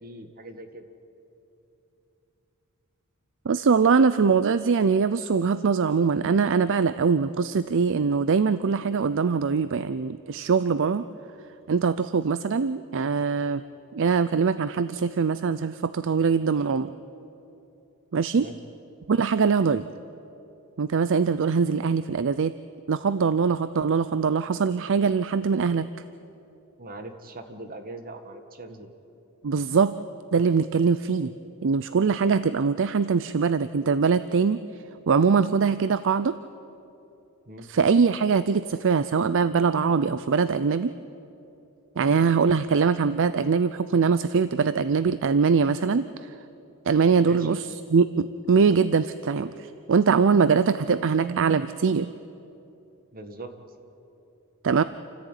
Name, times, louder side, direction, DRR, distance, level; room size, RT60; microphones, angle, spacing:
voice 1, 0.0-0.8 18.3-18.6 21.7-21.9 26.8-28.9 37.5-37.7 47.2-47.6 53.1-53.5, right 2 dB, 40° right, 7 dB, 1.8 m, -41 dB
voice 2, 3.5-11.0 11.7-13.6 13.9-16.9 18.1-18.5 19.1-19.9 20.8-22.5 22.9-25.9 29.4-29.9 30.3-31.3 31.6-34.6 35.1-36.4 37.7-40.9 42.0-46.3 46.9-52.1 54.6-54.8, right 5 dB, 60° right, 14 dB, 0.5 m, -22 dB
28.0 x 14.5 x 9.2 m, 2.8 s
head